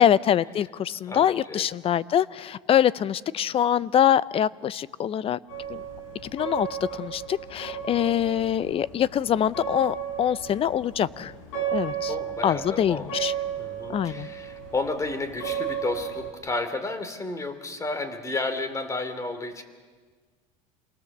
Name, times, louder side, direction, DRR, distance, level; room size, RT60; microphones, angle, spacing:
voice 1, 0.0-5.4 5.7-5.8 6.3-6.7 6.9-11.3 11.7-12.1 12.4-13.3 13.9-14.3, left 10 dB, 35° left, 19 dB, 0.6 m, -24 dB
voice 2, 1.0-1.7 12.1-19.6, left 2 dB, 20° left, 10 dB, 2.8 m, -32 dB
sound 1, 5.5-16.3, right 8 dB, 90° left, 4.8 m, -34 dB
27.5 x 19.0 x 7.4 m, 1.5 s
supercardioid pair, 115°, 17 cm